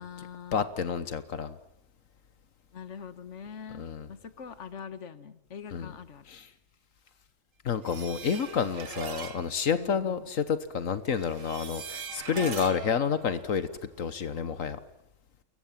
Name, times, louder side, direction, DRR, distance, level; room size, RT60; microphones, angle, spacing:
voice 1, 0.0-0.7 2.7-6.2 9.8-10.3, left 7 dB, 65° left, 13 dB, 1.7 m, -43 dB
voice 2, 0.5-1.6 3.8-4.1 5.7-5.9 6.3-6.5 7.6-13.7 14.0-14.8, left 6 dB, 80° left, 13 dB, 1.6 m, -29 dB
sound 1, 7.8-9.5 11.1-14.0, right 6 dB, 90° right, 1.9 m, -41 dB
29.0 x 22.5 x 7.5 m, 0.80 s
omnidirectional pair, 1.3 m